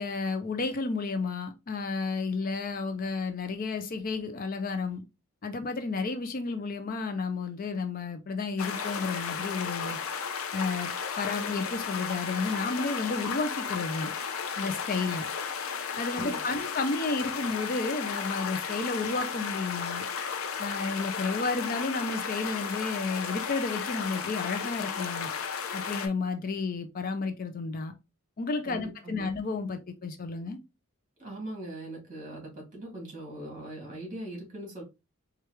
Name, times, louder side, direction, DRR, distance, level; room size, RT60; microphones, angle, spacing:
voice 1, 0.0-5.0 5.4-10.0 10.5-14.1 14.6-15.3 16.0-20.0 20.6-25.3 25.7-27.9 28.4-30.6, left 3 dB, 40° left, 8 dB, 0.4 m, -32 dB
sound 1, 8.6-26.1, left 6 dB, 80° left, 0.7 m, -34 dB
voice 2, 16.2-16.6 28.6-29.4 31.2-34.8, right 1 dB, 35° right, 0 dB, 2.1 m, -40 dB
4.5 x 2.4 x 3.1 m, 0.26 s
head